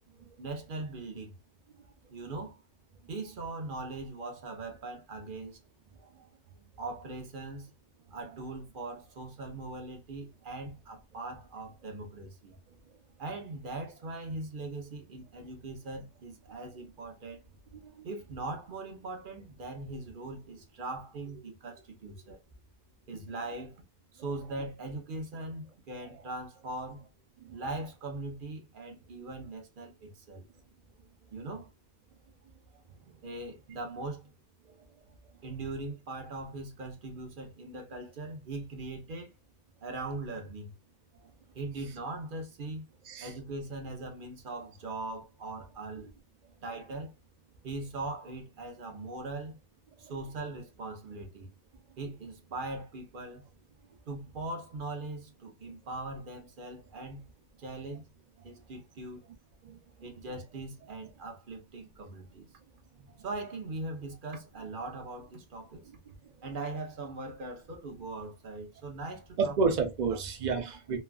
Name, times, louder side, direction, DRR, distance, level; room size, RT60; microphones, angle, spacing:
voice 1, 0.4-1.3 2.1-2.6 3.1-5.6 6.8-7.7 8.1-12.5 13.2-17.4 18.0-22.4 23.1-23.8 24.1-27.0 27.5-30.4 31.3-31.7 33.2-34.3 35.4-39.3 39.8-40.7 41.5-42.8 43.2-46.1 46.6-47.1 47.6-49.6 50.0-51.5 52.0-53.4 54.1-57.2 57.6-58.1 58.4-59.2 60.0-62.5 63.2-65.8 66.4-69.5 70.1-70.2 70.5-70.6, right 2 dB, 45° right, 0.7 m, -40 dB
voice 2, 69.4-71.0, right 4 dB, 85° right, 0.4 m, -30 dB
3.1 x 2.3 x 2.3 m
omnidirectional pair, 1.5 m